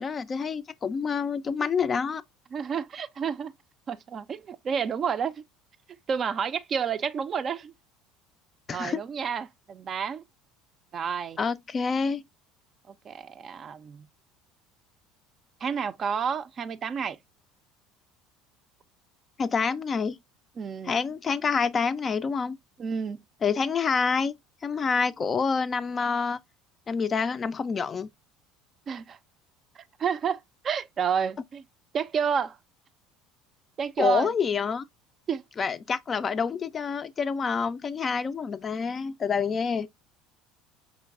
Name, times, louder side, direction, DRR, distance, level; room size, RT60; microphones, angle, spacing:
voice 1, 0.0-2.2 8.7-9.0 11.4-12.2 19.4-20.2 20.8-22.6 23.4-24.3 24.6-26.4 26.9-28.1 34.0-34.8 35.6-39.9, left 5 dB, 35° left, 0.3 m, -27 dB
voice 2, 2.5-3.5 3.9-5.4 6.1-7.7 8.7-10.2 10.9-11.4 12.9-14.1 15.6-17.2 20.6-20.9 22.8-23.2 28.9-29.2 29.8-31.6 31.9-32.6 33.8-34.3 35.3-35.4, right 7 dB, 40° right, 0.4 m, -30 dB
5.1 x 3.1 x 2.3 m
hypercardioid pair, 80°, 0 cm